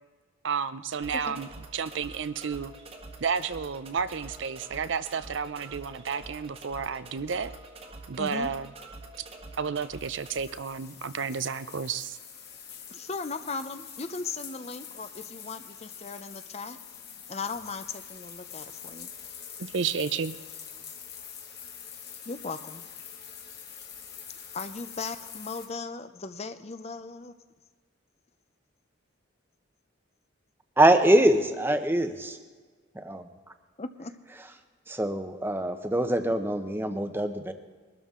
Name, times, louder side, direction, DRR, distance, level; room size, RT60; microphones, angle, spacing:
voice 1, 0.4-2.7 3.2-7.5 8.1-8.7 9.2-9.3 9.6-12.2 19.6-20.4, right 6 dB, 60° right, 13 dB, 0.5 m, -31 dB
sound 1, 0.9-10.5, right 2 dB, 30° right, 1.3 m, -46 dB
voice 2, 8.2-8.5 12.9-16.8 17.3-19.1 22.3-22.8 24.5-27.3 33.8-34.1, left 4 dB, 30° left, 10 dB, 0.6 m, -37 dB
sound 2, 10.0-25.7, left 8 dB, 50° left, 2.2 m, -45 dB
voice 3, 30.8-32.4 32.9-33.3 34.9-37.5, right 1 dB, 10° right, 8 dB, 0.8 m, -24 dB
22.0 x 12.5 x 3.7 m, 1.5 s
head